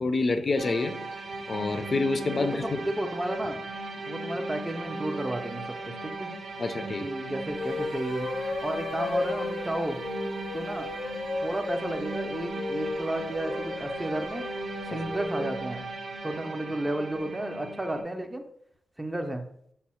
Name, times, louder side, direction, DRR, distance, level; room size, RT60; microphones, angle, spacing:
voice 1, 0.0-0.9 1.5-2.6 6.6-7.0, left 3 dB, 45° left, 7 dB, 0.4 m, -27 dB
sound 1, 0.6-18.0, right 2 dB, 65° right, 0.6 m, -37 dB
voice 2, 2.4-3.6 4.1-6.3 7.0-8.3 8.6-10.0 10.5-10.9 11.4-14.5 14.9-15.9 16.2-18.4 19.0-19.4, right 1 dB, 15° right, 6 dB, 0.4 m, -32 dB
sound 2, 7.5-15.6, left 3 dB, 90° left, 0.6 m, -35 dB
5.3 x 2.0 x 4.2 m, 0.69 s
wide cardioid pair, 110°, 0 cm